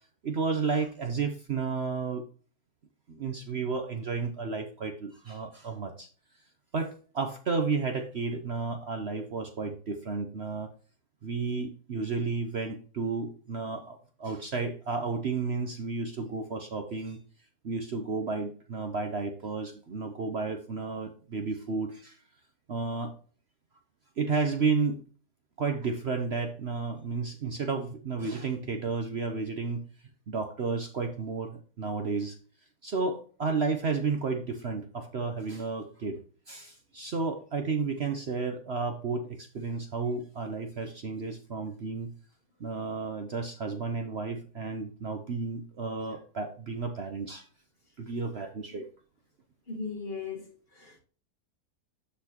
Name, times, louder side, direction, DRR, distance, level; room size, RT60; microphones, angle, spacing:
voice 1, 0.2-2.2 3.1-6.1 6.7-10.7 11.2-17.2 17.6-22.2 22.7-23.1 24.2-25.0 25.6-29.8 30.3-32.4 32.8-36.2 36.5-42.1 42.6-47.5 48.0-48.9, right 4 dB, 50° right, 0.9 m, -32 dB
voice 2, 49.7-51.0, left 4 dB, 35° left, 2.0 m, -38 dB
12.5 x 4.3 x 2.9 m
omnidirectional pair, 1.7 m